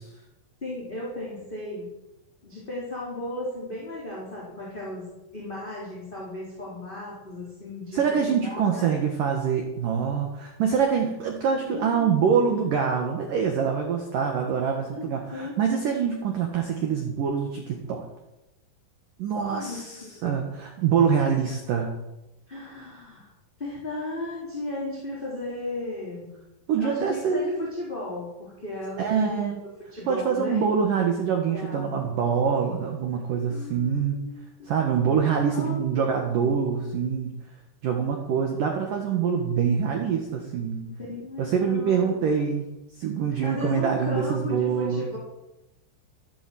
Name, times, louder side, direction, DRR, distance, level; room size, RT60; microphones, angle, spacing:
voice 1, 0.6-1.9 2.4-5.1 5.3-8.0 8.4-9.0 11.6-12.3 14.8-15.6 19.4-20.4 22.5-23.3 23.6-26.3 26.8-29.4 29.9-30.6 31.5-32.1 33.5-34.7 35.5-36.1 40.8-42.2 43.3-45.2, left 2 dB, 10° left, -6 dB, 3.5 m, -35 dB
voice 2, 7.9-18.0 19.2-21.9 26.7-27.6 29.0-29.6 30.1-34.2 34.7-37.3 37.8-40.8 41.4-42.7 43.0-45.1, right 6 dB, 65° right, 3 dB, 2.2 m, -25 dB
14.5 x 11.0 x 7.8 m, 0.95 s
omnidirectional pair, 5.9 m